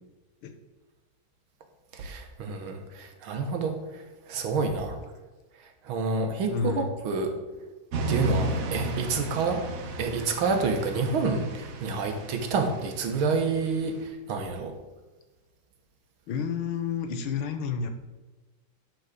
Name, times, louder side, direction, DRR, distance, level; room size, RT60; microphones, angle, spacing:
voice 1, 1.9-3.8 4.3-5.0 5.9-7.3 8.1-9.6 10.0-13.9 14.3-14.7, right 4 dB, 80° right, 5 dB, 2.0 m, -28 dB
voice 2, 6.5-6.9 16.3-17.9, left 6 dB, 80° left, 7 dB, 1.8 m, -30 dB
sound 1, 7.9-14.0, right 1 dB, 50° right, 1.1 m, -34 dB
10.5 x 4.9 x 6.7 m, 1.2 s
omnidirectional pair, 2.3 m